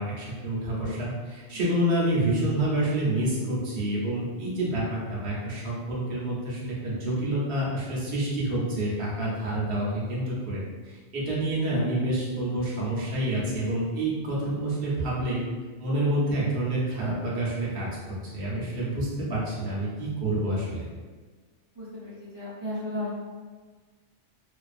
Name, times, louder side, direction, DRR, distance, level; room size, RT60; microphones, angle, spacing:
voice 1, 0.0-15.4 15.8-20.9, right 1 dB, 60° right, -6 dB, 0.9 m, -28 dB
voice 2, 21.7-23.1, left 1 dB, 30° right, -11 dB, 0.6 m, -35 dB
2.6 x 2.3 x 2.4 m, 1.4 s
omnidirectional pair, 1.2 m